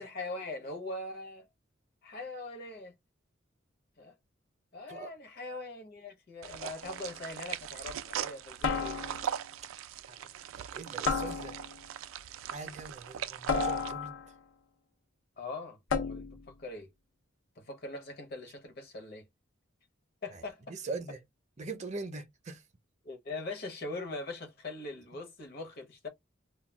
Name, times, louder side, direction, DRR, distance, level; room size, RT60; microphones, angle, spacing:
voice 1, 0.0-1.5 2.0-2.9 4.0-4.1 4.7-9.0 15.4-16.9 17.6-19.3 20.2-20.8 23.0-26.1, left 2 dB, 50° left, 0.8 m, -41 dB
sound 1, 6.4-13.9, right 10 dB, 85° right, 0.3 m, -40 dB
sound 2, 6.8-7.2 8.6-9.4 11.1-11.9 13.5-14.4 15.9-16.5, left 4 dB, 85° left, 0.6 m, -32 dB
voice 2, 10.6-11.5 12.5-14.2 20.7-21.2 21.6-22.6, right 3 dB, 35° right, 0.6 m, -41 dB
2.3 x 2.2 x 3.2 m
head